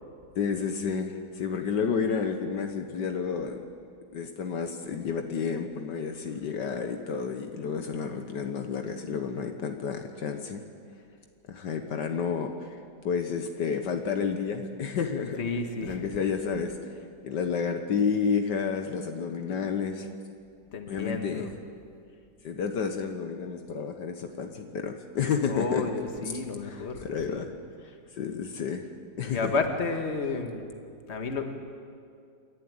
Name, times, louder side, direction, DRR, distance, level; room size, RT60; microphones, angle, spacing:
voice 1, 0.3-3.6 4.1-10.6 11.5-12.8 13.0-15.4 15.8-16.7 17.2-20.1 20.9-21.5 22.4-25.8 26.2-26.3 26.6-27.5 28.1-28.9 29.2-29.6, left 6 dB, 70° left, 5 dB, 1.7 m, -30 dB
voice 2, 15.4-16.1 20.7-21.5 25.5-27.4 29.3-30.7 31.1-31.5, left 4 dB, 40° left, 5 dB, 1.7 m, -31 dB
28.0 x 11.5 x 8.9 m, 2.3 s
omnidirectional pair, 2.0 m